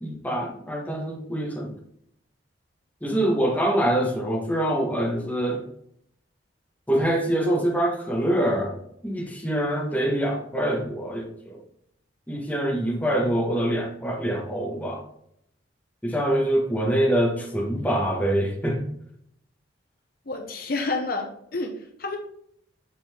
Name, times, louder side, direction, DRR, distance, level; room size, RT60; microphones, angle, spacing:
voice 1, 0.0-1.7 3.0-5.6 6.9-11.6 12.3-15.0 16.0-18.9, right 1 dB, 10° left, -1 dB, 1.2 m, -25 dB
voice 2, 20.3-22.2, left 3 dB, 50° left, 3 dB, 0.8 m, -29 dB
7.1 x 4.1 x 3.6 m, 0.71 s
head